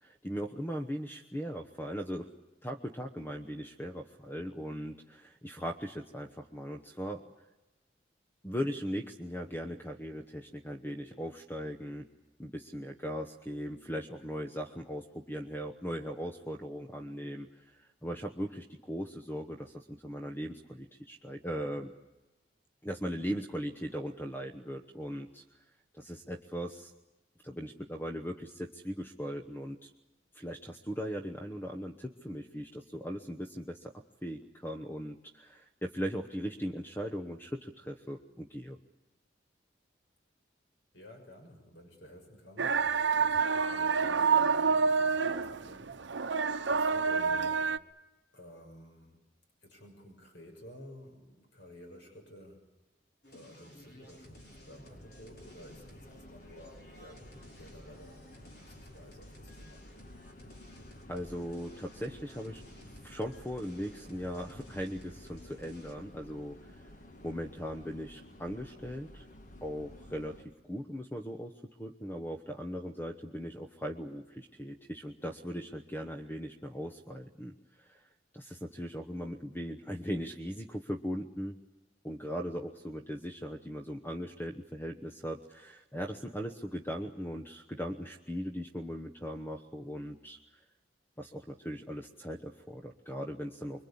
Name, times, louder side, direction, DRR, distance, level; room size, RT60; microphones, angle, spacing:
voice 1, 0.0-2.3 2.6-7.2 8.4-12.1 12.4-21.9 22.8-25.4 25.9-26.9 27.4-29.9 30.3-33.9 34.2-38.8 61.1-62.6 63.0-66.9 67.2-69.3 69.6-78.1 78.3-81.6 82.0-90.4 91.2-93.8, equal, 10° left, 5 dB, 1.0 m, -39 dB
voice 2, 40.9-42.9 43.2-46.0 46.6-47.7 48.3-49.2 49.6-52.6 53.2-58.3 58.7-59.9, equal, 80° left, 4 dB, 6.4 m, -53 dB
sound 1, 42.6-47.8, right 5 dB, 85° right, 0.8 m, -28 dB
sound 2, 53.2-65.9, equal, 60° left, 5.2 m, -55 dB
sound 3, 53.8-70.5, left 1 dB, 45° left, 1.6 m, -53 dB
25.5 x 23.5 x 8.6 m, 1.0 s
head